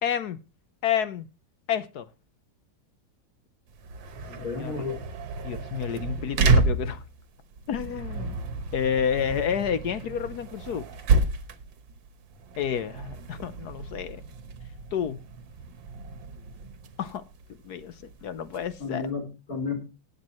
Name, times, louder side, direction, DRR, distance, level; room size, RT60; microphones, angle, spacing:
voice 1, 0.0-0.4 0.8-1.3 1.7-2.0 4.4-4.8 5.4-7.0 7.7-8.4 8.7-10.8 12.6-14.2 14.9-15.2 17.0-17.2 17.6-17.9 18.2-19.1, left 8 dB, 65° left, 1.2 m, -29 dB
sound 1, 3.7-19.1, right 3 dB, 90° right, 1.9 m, -30 dB
voice 2, 4.3-5.0 18.8-19.8, left 4 dB, 50° left, 3.9 m, -32 dB
19.0 x 8.5 x 3.0 m
omnidirectional pair, 2.0 m